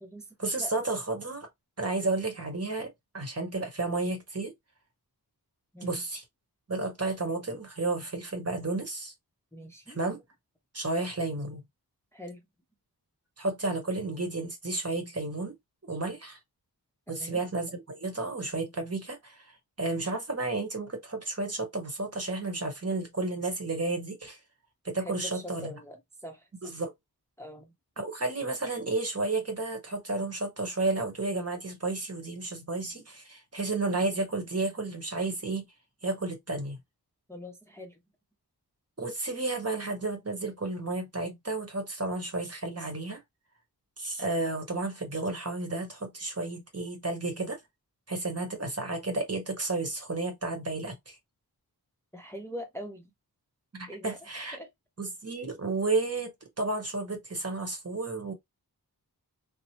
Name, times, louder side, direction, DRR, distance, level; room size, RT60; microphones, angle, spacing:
voice 1, 0.4-1.5 1.8-4.5 5.8-6.2 6.7-9.1 9.9-10.2 10.7-11.6 13.4-15.6 15.9-16.4 17.1-19.5 19.8-24.4 24.8-25.7 26.6-26.9 28.0-35.7 36.0-36.8 39.0-43.2 44.0-47.6 48.1-51.2 53.7-54.6 55.0-56.3 56.6-58.3, right 2 dB, 40° right, 1.0 m, -32 dB
voice 2, 9.5-10.0 12.1-12.4 17.1-17.4 25.0-26.5 27.4-27.7 37.3-38.0 52.1-53.1 53.9-54.2 54.5-54.7, equal, 5° left, 0.6 m, -42 dB
2.9 x 2.0 x 2.8 m
wide cardioid pair, 60°, 39 cm